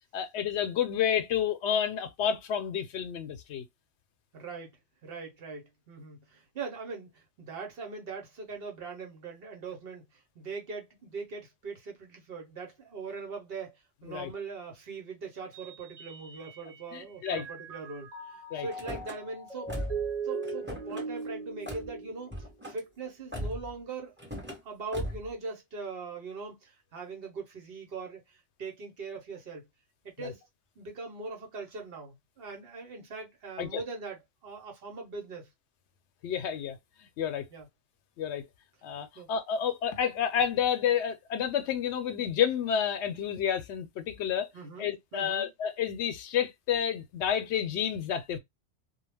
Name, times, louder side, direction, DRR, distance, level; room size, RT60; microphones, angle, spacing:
voice 1, 0.1-3.6 14.0-14.3 16.9-17.5 18.5-18.7 30.2-30.3 33.6-33.8 36.2-37.4 38.2-38.4 38.8-44.5 44.8-48.4, left 8 dB, 85° left, 0.9 m, -30 dB
voice 2, 4.3-4.8 5.0-10.0 10.4-13.8 14.0-19.7 20.2-22.4 22.6-24.1 24.6-29.7 30.0-30.4 30.8-35.5 37.5-37.7 39.2-39.3 44.5-45.5, right 4 dB, 60° right, 1.0 m, -41 dB
Mallet percussion, 15.5-16.9 17.3-22.7, right 4 dB, 40° right, 1.0 m, -39 dB
Car / Slam, 18.7-19.2 19.7-20.1 20.4-21.1 21.7-21.9 22.3-22.8 23.3-23.7 24.2-24.6 24.9-25.3, equal, 10° right, 0.9 m, -38 dB
2.3 x 2.1 x 3.3 m
omnidirectional pair, 1.1 m